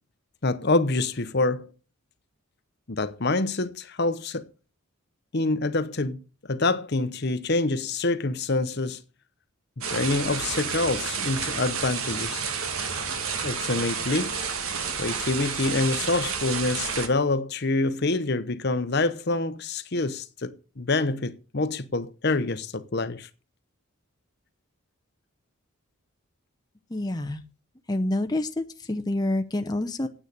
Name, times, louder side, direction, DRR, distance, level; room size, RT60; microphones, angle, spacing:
voice 1, 0.4-1.7 2.9-4.4 5.3-6.2 6.5-9.0 9.9-12.5 13.4-14.3 15.0-23.3, left 3 dB, 50° left, 0.8 m, -26 dB
sound 1, 9.8-17.1, right 6 dB, 75° right, 1.8 m, -30 dB
voice 2, 26.9-27.4 27.9-30.1, left 1 dB, 20° left, 0.7 m, -27 dB
9.3 x 8.6 x 6.7 m
head